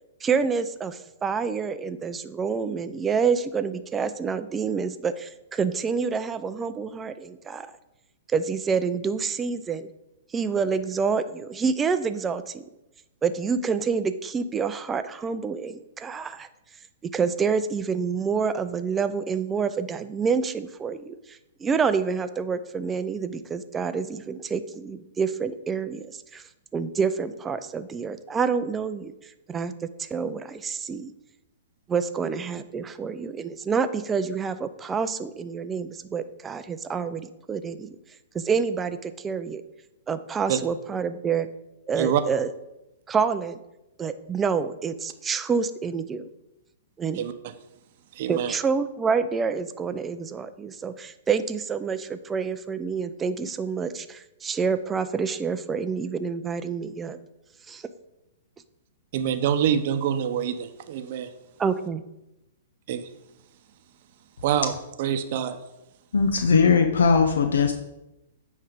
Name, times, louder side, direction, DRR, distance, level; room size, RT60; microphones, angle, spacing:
voice 1, 0.2-7.7 8.3-9.9 10.3-12.6 13.2-16.5 17.0-21.2 21.6-26.4 26.7-29.1 29.5-31.1 31.9-37.9 38.3-39.6 40.1-41.5 41.9-42.5 43.1-43.6 44.0-46.3 47.0-47.2 48.3-57.2 57.7-57.8 61.6-62.0, right 5 dB, 15° right, 11 dB, 0.4 m, -27 dB
voice 2, 47.1-47.5 48.1-48.5 59.1-61.3 62.9-63.1 64.4-64.7 65.0-65.6, right 9 dB, 50° right, 9 dB, 0.7 m, -25 dB
voice 3, 66.1-67.7, left 5 dB, 85° left, 6 dB, 0.6 m, -19 dB
9.1 x 3.2 x 5.1 m, 0.93 s
hypercardioid pair, 135°, 0 cm